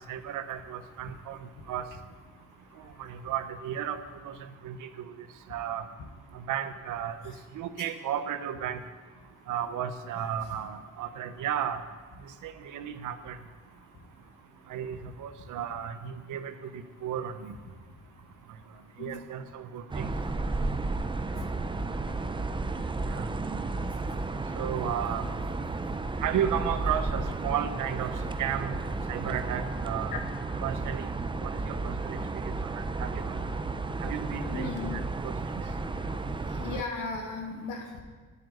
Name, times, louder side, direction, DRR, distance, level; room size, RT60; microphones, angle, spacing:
voice 1, 0.1-1.4 1.7-1.9 3.0-4.4 4.6-5.1 5.5-5.8 6.3-8.8 9.5-11.8 12.4-13.4 14.7-16.7 17.0-17.5 19.0-20.1 23.1-23.3 24.5-25.3 26.2-28.1 28.4-28.8 29.1-30.1 30.6-31.1 31.4-32.2 32.4-33.4 34.0-35.3, right 9 dB, 80° right, 9 dB, 1.0 m, -34 dB
sound 1, 19.9-36.8, right 3 dB, 15° right, 0.7 m, -33 dB
voice 2, 34.5-35.0 36.5-37.9, left 3 dB, 85° left, 3 dB, 2.0 m, -36 dB
11.0 x 7.3 x 9.5 m, 1.4 s
cardioid pair, 90°, 30 cm